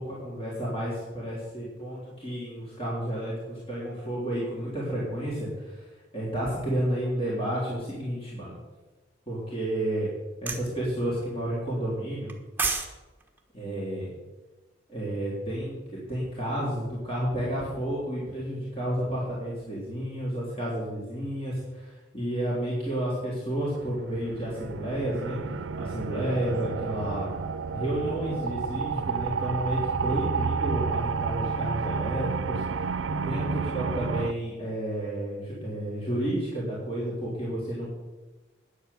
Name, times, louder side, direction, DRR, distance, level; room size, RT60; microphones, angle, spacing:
voice 1, 0.0-8.5 9.3-10.1 10.4-12.3 13.5-14.1 14.9-25.4 25.8-27.3 27.7-32.6 33.2-37.9, right 1 dB, 30° left, -7 dB, 3.6 m, -31 dB
sound 1, 10.5-10.7 12.3-12.9 13.2-13.4, right 4 dB, 10° right, 1.2 m, -28 dB
sound 2, 23.7-34.3, right 5 dB, 80° right, 0.5 m, -31 dB
9.9 x 8.3 x 8.3 m, 1.2 s
head